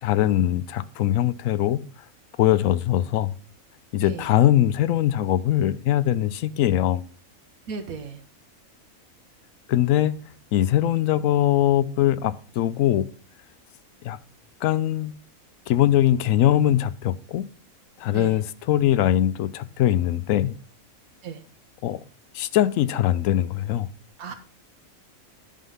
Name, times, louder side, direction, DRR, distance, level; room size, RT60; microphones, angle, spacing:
voice 1, 0.0-1.8 2.4-3.3 3.9-7.0 9.7-13.1 14.0-14.2 14.6-15.2 15.7-17.5 18.0-20.5 21.8-22.0 22.3-23.9, left 12 dB, 75° left, 1.0 m, -22 dB
voice 2, 4.0-4.4 7.7-8.2 18.1-18.4 21.2-21.4 24.2-24.3, right 6 dB, 90° right, 1.4 m, -35 dB
11.0 x 3.7 x 5.4 m
omnidirectional pair, 1.4 m